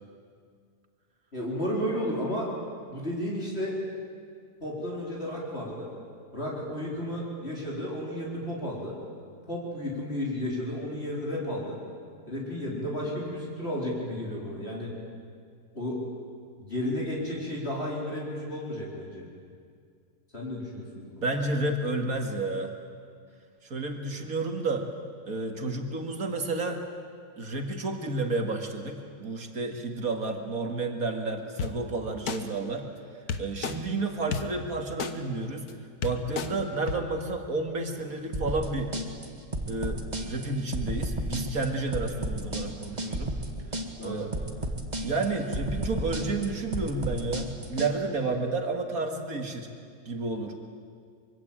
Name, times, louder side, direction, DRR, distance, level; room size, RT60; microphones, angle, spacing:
voice 1, 1.3-2.5 2.9-3.7 4.6-5.9 6.3-9.0 9.5-11.8 12.3-14.9 15.7-16.0 16.6-19.2 20.3-21.4 44.0-44.3 48.2-48.3, equal, 40° left, -4 dB, 4.5 m, -33 dB
voice 2, 21.2-22.7 23.6-24.9 25.3-26.8 27.4-32.9 33.4-35.6 36.0-38.9 39.7-43.3 44.0-44.3 45.0-49.7 50.1-50.5, right 3 dB, 60° right, 4 dB, 2.5 m, -31 dB
sound 1, 31.6-31.7 32.3-32.4 33.3-33.8 34.3-34.4 35.0-35.1 35.7-35.8 36.0-36.5 36.9-37.0, left 6 dB, 70° left, 1.8 m, -30 dB
sound 2, 38.3-47.9, right 1 dB, 25° right, 2.0 m, -32 dB
24.5 x 23.5 x 8.9 m, 2.2 s
omnidirectional pair, 1.7 m